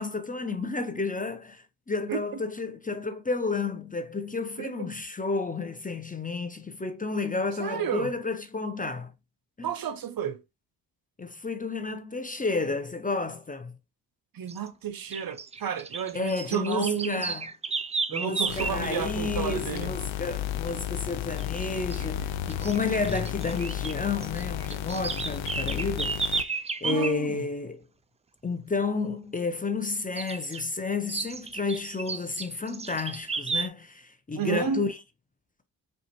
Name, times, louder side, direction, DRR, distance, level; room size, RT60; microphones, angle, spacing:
voice 1, 0.0-9.1 9.6-9.7 11.2-13.8 16.1-17.5 18.1-27.8 28.4-34.9, left 4 dB, 20° left, 0.6 m, -31 dB
voice 2, 2.1-2.4 4.6-4.9 7.6-8.1 9.6-10.4 14.3-17.3 18.1-19.9 26.8-27.5 34.3-34.9, right 8 dB, 50° right, 0.7 m, -32 dB
sound 1, 14.5-14.7 15.1-18.8 21.4-21.7 21.9-22.1 22.5-23.9 24.2-27.2 30.2-30.6 31.1-33.7, right 4 dB, 15° right, 0.4 m, -33 dB
sound 2, 18.5-26.4, left 11 dB, 75° left, 0.6 m, -33 dB
4.9 x 2.4 x 2.9 m
supercardioid pair, 45°, 47 cm